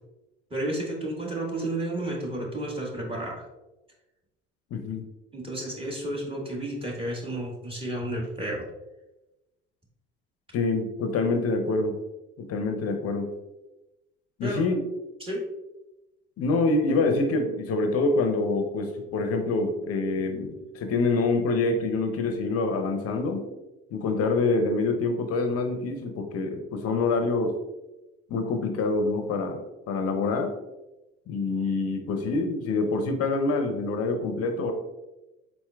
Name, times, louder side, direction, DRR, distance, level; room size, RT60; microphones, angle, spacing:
voice 1, 0.5-3.5 5.3-8.6 14.4-14.6 15.2-15.5, right 1 dB, 15° right, -2 dB, 1.5 m, -32 dB
voice 2, 4.7-5.1 10.5-12.0 12.4-13.3 14.4-14.8 16.4-23.5 23.9-27.6 28.3-29.6 29.9-30.5 31.3-34.7, left 3 dB, 50° left, 5 dB, 0.6 m, -26 dB
4.3 x 4.3 x 2.3 m, 1.0 s
hypercardioid pair, 70°, 31 cm